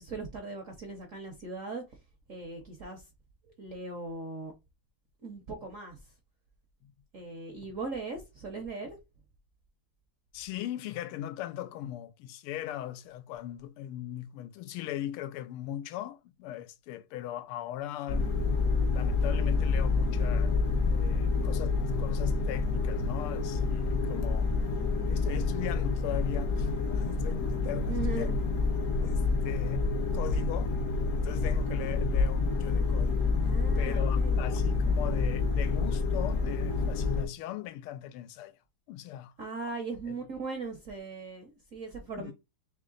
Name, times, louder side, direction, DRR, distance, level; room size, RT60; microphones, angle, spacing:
voice 1, 0.0-1.8 2.3-3.0 3.6-4.5 5.2-6.0 7.1-9.0 27.9-28.4 33.4-34.4 39.4-42.3, right 3 dB, 60° right, 0.8 m, -39 dB
voice 2, 10.3-18.4 18.8-20.6 20.9-24.5 25.0-28.5 29.0-30.7 31.2-33.3 33.8-38.6 38.9-39.3 40.1-40.2 42.2-42.3, left 12 dB, 90° left, 1.5 m, -39 dB
sound 1, 18.1-37.3, left 4 dB, 60° left, 0.9 m, -28 dB
3.6 x 3.1 x 3.8 m
omnidirectional pair, 2.4 m